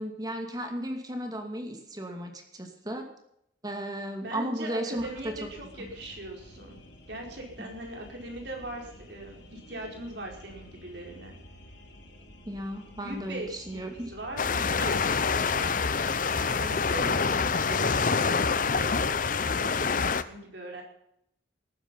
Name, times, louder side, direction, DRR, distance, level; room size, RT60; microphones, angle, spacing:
voice 1, 0.0-3.1 3.6-5.3 5.8-5.9 7.6-7.7 12.4-14.1, right 1 dB, 20° right, 4 dB, 2.5 m, -35 dB
voice 2, 4.2-6.8 7.1-11.4 12.9-15.7 16.3-19.0 19.4-19.7 20.2-20.8, right 1 dB, 70° right, 1 dB, 4.9 m, -40 dB
sound 1, 5.0-19.4, left 1 dB, 85° left, 2.7 m, -50 dB
sound 2, 14.4-20.2, left 5 dB, 45° left, 0.7 m, -26 dB
19.0 x 9.6 x 5.7 m, 0.75 s
head